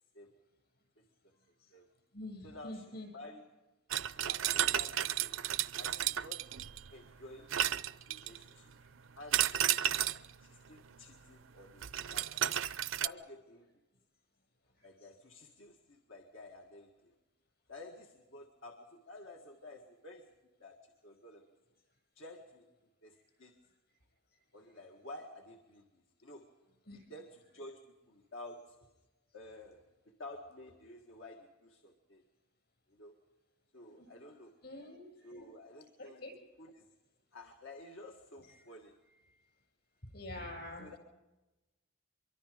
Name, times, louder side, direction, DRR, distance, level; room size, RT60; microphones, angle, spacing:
voice 1, 1.0-1.3 1.7-1.9 2.4-3.6 4.1-5.3 5.8-6.6 6.9-7.6 8.1-8.7 9.2-9.6 10.4-12.4 12.9-13.7 14.8-17.1 17.7-20.3 20.6-21.4 22.2-22.7 23.0-23.6 24.5-26.6 26.9-28.9 29.3-32.2 32.9-33.1 33.7-34.6 35.2-36.3 36.6-36.9 37.3-39.0 40.8-41.0, left 2 dB, 85° left, 2 dB, 1.9 m, -52 dB
voice 2, 2.1-3.1 8.3-8.4 26.9-27.0 33.9-34.1 34.6-35.3 36.0-36.3 38.5-38.6 40.1-41.0, left 1 dB, 55° left, 2 dB, 7.5 m, -46 dB
sound 1, 3.9-6.9 7.5-8.5 9.3-10.3 11.8-13.1, right 11 dB, 90° right, 0.6 m, -32 dB
25.0 x 23.0 x 5.2 m, 1.1 s
head